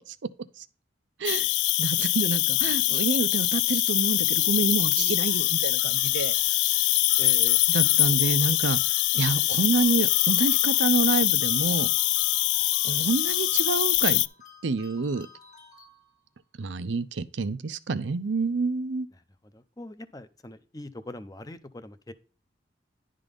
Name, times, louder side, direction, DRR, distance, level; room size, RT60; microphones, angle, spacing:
Cricket, 1.2-14.3, left 17 dB, 75° left, 0.3 m, -23 dB
voice 1, 1.8-6.7 7.7-8.8 9.1-11.9 12.8-14.2 14.6-15.3 16.6-19.1, right 4 dB, 85° right, 0.6 m, -28 dB
voice 2, 5.0-5.3 7.2-7.6 19.1-22.1, left 2 dB, 20° left, 0.6 m, -42 dB
sound 1, 5.2-16.4, left 5 dB, 50° left, 1.7 m, -52 dB
11.0 x 3.8 x 5.1 m
head